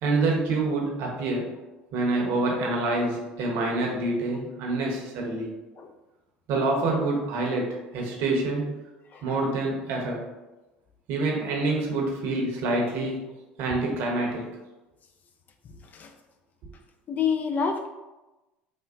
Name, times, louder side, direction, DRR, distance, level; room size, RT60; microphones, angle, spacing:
voice 1, 0.0-1.5 1.9-5.5 6.5-8.8 9.2-10.2 11.1-13.3 13.6-14.5, right 2 dB, 65° right, 0 dB, 0.8 m, -26 dB
voice 2, 9.1-9.4 15.6-16.1 17.1-17.9, left 6 dB, 40° left, 5 dB, 0.4 m, -28 dB
3.5 x 2.2 x 2.3 m, 1.1 s
hypercardioid pair, 75°, 4 cm